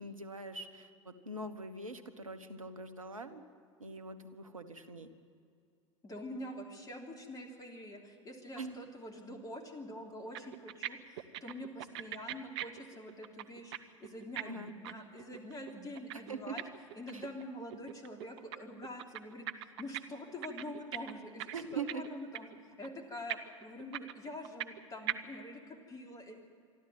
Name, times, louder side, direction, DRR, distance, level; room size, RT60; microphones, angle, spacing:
voice 1, 0.0-3.4 3.8-5.1 8.6-8.8 14.4-14.7 16.3-16.5 17.1-17.2 21.5-22.0, right 3 dB, 85° right, 9 dB, 1.3 m, -43 dB
voice 2, 6.0-13.7 14.0-16.6 16.9-19.5 19.8-26.3, left 1 dB, 20° left, 3 dB, 3.2 m, -45 dB
sound 1, 10.1-10.2 10.3-10.9 11.2-13.8 14.0-17.4 17.7-18.6 18.8-20.0 20.3-22.1 22.3-22.5 22.8-22.9 23.3-24.8 25.1-25.2, right 13 dB, 55° right, 0.9 m, -40 dB
26.5 x 12.0 x 9.1 m, 2.4 s
figure-of-eight pair, 85°, 17 cm